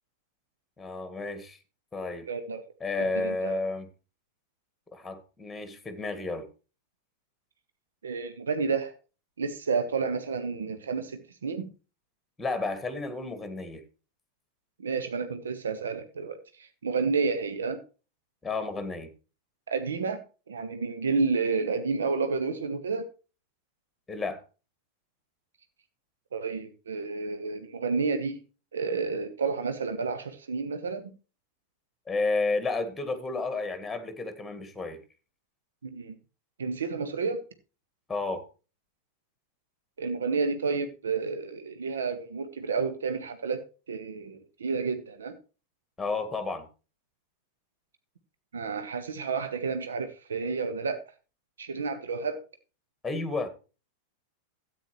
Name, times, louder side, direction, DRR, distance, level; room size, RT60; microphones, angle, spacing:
voice 1, 0.8-1.6 1.9-2.3 2.8-3.9 4.9-6.5 12.4-13.8 18.4-19.1 24.1-24.4 32.1-35.0 38.1-38.4 46.0-46.7 53.0-53.5, left 3 dB, 10° left, 1.7 m, -31 dB
voice 2, 2.3-2.6 3.0-3.6 8.0-9.0 9.4-11.7 14.8-17.8 19.7-23.1 26.3-28.4 28.7-31.1 35.8-36.1 36.6-37.4 40.0-45.4 48.5-51.0 51.6-52.4, right 4 dB, 70° right, 1.0 m, -30 dB
13.0 x 8.7 x 3.1 m
figure-of-eight pair, 90°, 0 cm